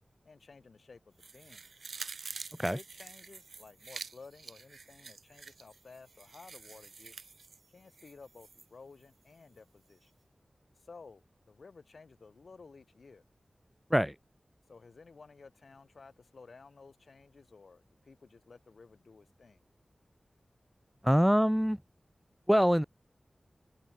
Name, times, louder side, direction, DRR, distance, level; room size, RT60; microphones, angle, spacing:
voice 1, 0.2-1.6 2.5-7.2 7.7-10.1 10.8-13.2 14.7-19.6, left 4 dB, 75° left, 1.1 m, -54 dB
sound 1, 1.2-8.7 9.0-9.1, right 4 dB, 85° right, 1.4 m, -47 dB
voice 2, 21.0-21.8 22.5-22.8, equal, ahead, 0.3 m, -24 dB
open air
wide cardioid pair, 55°, 0 cm